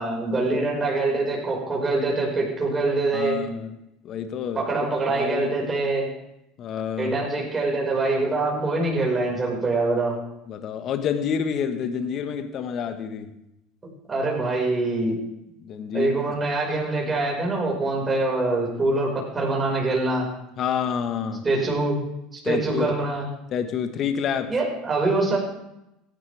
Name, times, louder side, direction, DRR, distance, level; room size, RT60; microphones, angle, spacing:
voice 1, 0.0-3.4 4.5-6.1 7.0-10.2 14.1-15.2 15.9-20.3 21.4-22.0 22.3-23.3 24.5-25.4, right 2 dB, 25° right, -2 dB, 5.4 m, -24 dB
voice 2, 3.1-3.7 4.0-4.7 5.1-5.5 6.6-7.1 10.5-13.3 15.6-16.2 20.6-21.4 22.4-22.9 23.5-24.5, left 7 dB, 50° left, 9 dB, 1.4 m, -28 dB
17.5 x 13.0 x 3.5 m, 0.87 s
hypercardioid pair, 80°, 0 cm